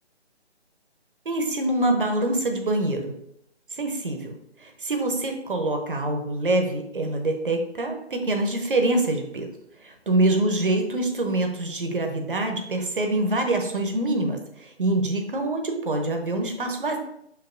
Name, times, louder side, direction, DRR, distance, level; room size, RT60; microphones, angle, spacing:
voice 1, 1.3-3.1 3.7-9.5 10.1-17.0, right 2 dB, 50° right, 4 dB, 0.8 m, -25 dB
6.8 x 3.0 x 2.6 m, 0.75 s
figure-of-eight pair, 160°, 34 cm